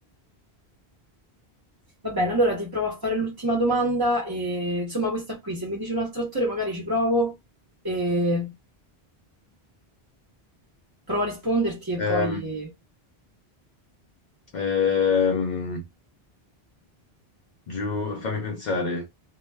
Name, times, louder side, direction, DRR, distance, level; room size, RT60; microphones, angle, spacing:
voice 1, 2.0-7.3 7.8-8.5 11.1-12.7, equal, 25° right, 0.6 m, -26 dB
voice 2, 12.0-12.4 14.5-15.8 17.7-19.1, left 5 dB, 55° left, 0.6 m, -25 dB
2.2 x 2.2 x 3.2 m
omnidirectional pair, 1.1 m